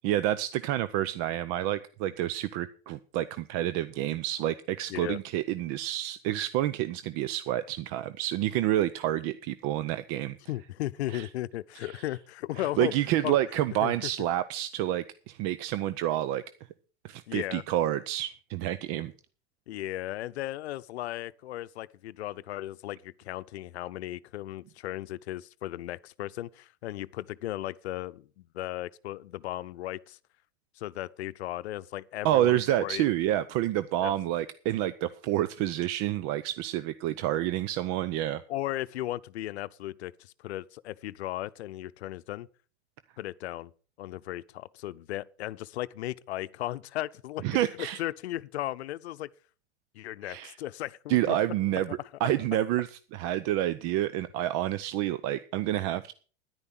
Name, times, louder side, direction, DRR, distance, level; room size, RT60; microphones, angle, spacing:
voice 1, 0.0-10.4 11.1-11.3 11.8-12.0 12.6-16.4 17.0-19.1 32.2-38.4 47.4-48.0 50.2-50.6 51.1-56.1, right 13 dB, 45° right, 0.7 m, -29 dB
voice 2, 10.5-12.9 13.2-13.4 13.8-13.9 17.3-17.6 19.7-30.2 30.8-33.1 34.0-34.1 38.5-42.5 43.2-43.7 44.0-49.3 49.9-51.4, left 15 dB, 75° left, 0.7 m, -36 dB
10.5 x 9.8 x 6.0 m
hypercardioid pair, 110°, 33 cm